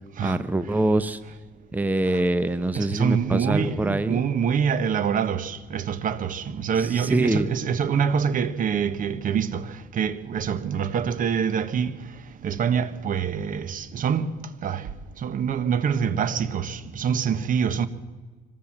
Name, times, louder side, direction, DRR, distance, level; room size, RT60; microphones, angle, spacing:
voice 1, 0.2-1.2 1.7-4.2 6.8-7.5, right 2 dB, 10° right, 0.9 m, -24 dB
voice 2, 2.7-11.9 12.4-14.3 14.6-14.9 15.2-17.9, right 7 dB, 55° right, 1.4 m, -25 dB
25.0 x 18.5 x 7.5 m
cardioid pair, 110°, 17 cm